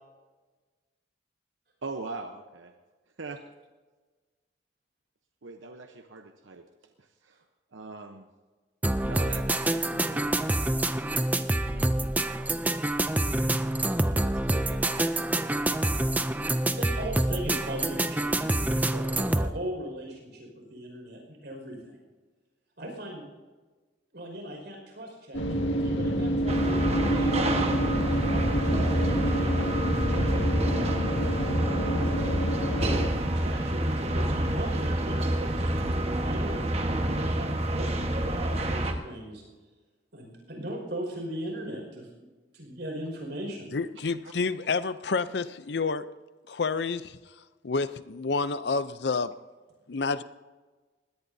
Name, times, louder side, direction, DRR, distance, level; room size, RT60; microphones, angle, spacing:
voice 1, 1.8-2.7 3.2-3.4 5.4-6.7 7.0-7.4 7.7-8.3 9.0-10.6 11.7-11.9 14.1-14.9 15.9-16.0 19.1-19.2, right 3 dB, 90° right, 5 dB, 0.9 m, -42 dB
sound 1, 8.8-19.5, right 1 dB, 10° right, 0.4 m, -27 dB
voice 2, 16.4-22.0 22.8-23.2 24.1-31.0 32.1-32.3 33.3-39.4 40.1-42.3 42.5-43.8, right 1 dB, 60° right, 1 dB, 5.4 m, -39 dB
sound 2, 25.3-33.1, equal, 85° left, 1.8 m, -28 dB
sound 3, 26.5-38.9, right 1 dB, 35° right, 1.3 m, -28 dB
voice 3, 43.7-46.1 46.5-47.2 47.6-49.3 49.9-50.2, left 4 dB, 60° left, 14 dB, 0.6 m, -29 dB
21.0 x 17.0 x 2.7 m, 1.3 s
head